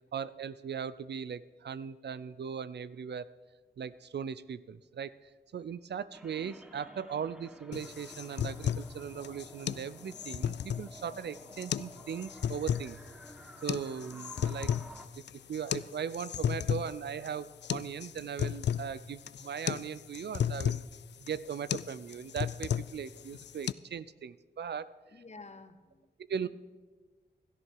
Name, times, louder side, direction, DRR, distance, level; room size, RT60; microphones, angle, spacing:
voice 1, 0.1-3.3 3.8-5.2 5.5-13.0 13.6-14.7 15.5-20.8 21.2-24.9 26.3-26.5, right 7 dB, 70° right, 16 dB, 0.5 m, -39 dB
sound 1, 6.1-15.1, equal, 5° right, 1.3 m, -52 dB
sound 2, 7.7-23.7, left 9 dB, 75° left, 0.4 m, -35 dB
voice 2, 25.1-26.1, left 3 dB, 40° left, 10 dB, 1.2 m, -50 dB
16.5 x 13.0 x 4.7 m, 1.4 s
cardioid pair, 70°, 18 cm